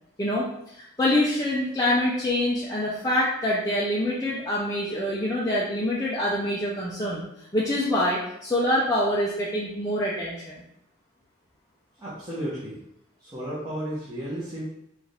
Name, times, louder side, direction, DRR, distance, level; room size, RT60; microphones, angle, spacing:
voice 1, 0.2-7.2 7.5-10.6, left 1 dB, 15° left, -7 dB, 0.5 m, -25 dB
voice 2, 12.0-12.8 13.2-14.6, right 1 dB, 20° right, -11 dB, 1.1 m, -33 dB
4.8 x 2.5 x 3.4 m, 0.78 s
head